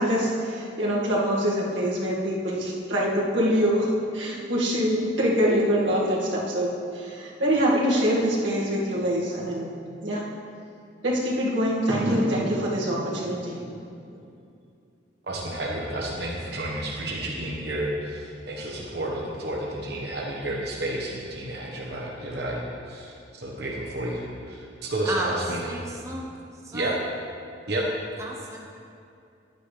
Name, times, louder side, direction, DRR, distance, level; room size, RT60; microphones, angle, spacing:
voice 1, 0.0-9.7 10.0-10.2 11.0-13.7, equal, 85° right, -5 dB, 2.0 m, -24 dB
voice 2, 15.2-25.6 26.7-26.9 27.7-27.8, right 1 dB, 60° right, -3 dB, 1.2 m, -31 dB
voice 3, 25.7-26.3 26.6-27.0 28.2-28.6, right 2 dB, 15° right, -1 dB, 0.8 m, -33 dB
11.0 x 9.1 x 3.3 m, 2.5 s
head